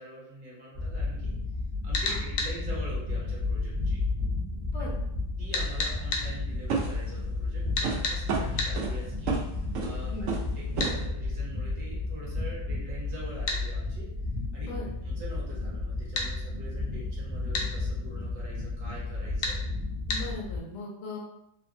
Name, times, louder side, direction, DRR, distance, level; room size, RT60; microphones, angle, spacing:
voice 1, 0.0-1.3 1.8-4.0 4.8-4.9 5.4-10.3 10.6-14.1 14.5-14.7 15.0-19.6, right 1 dB, 50° right, -5 dB, 1.0 m, -44 dB
internal body sounds, 0.7-20.6, left 3 dB, 30° right, 0.5 m, -32 dB
sound 1, 1.9-2.5 5.5-6.3 7.8-8.2 8.6-8.7 10.8-11.0 13.5-13.6 16.2-16.3 17.5-17.7 19.4-19.6 20.1-20.2, left 3 dB, 90° left, 1.3 m, -30 dB
sound 2, 5.5-5.7 6.7-7.1 7.8-8.0 8.3-8.9 9.3-9.4 9.7-10.0 10.3-10.5 10.8-10.9, right 5 dB, 80° right, 0.7 m, -30 dB
voice 2, 20.1-21.2, left 2 dB, 70° left, -4 dB, 1.4 m, -38 dB
3.3 x 2.1 x 2.6 m, 0.80 s
omnidirectional pair, 1.9 m